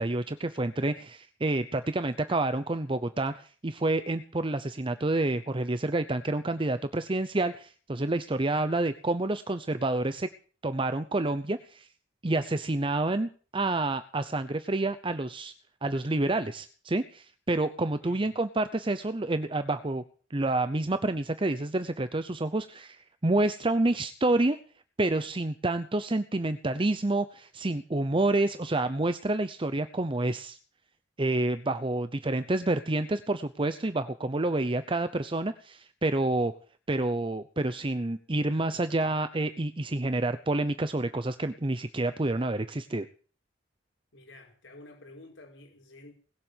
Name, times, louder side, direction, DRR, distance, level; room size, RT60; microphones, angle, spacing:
voice 1, 0.0-10.3 10.6-11.9 12.2-15.5 15.8-20.0 20.3-24.6 25.0-30.6 31.2-36.5 36.9-43.1, right 2 dB, 30° right, 0.7 m, -28 dB
voice 2, 44.1-46.1, left 2 dB, 90° left, 4.9 m, -50 dB
20.5 x 7.6 x 9.1 m
head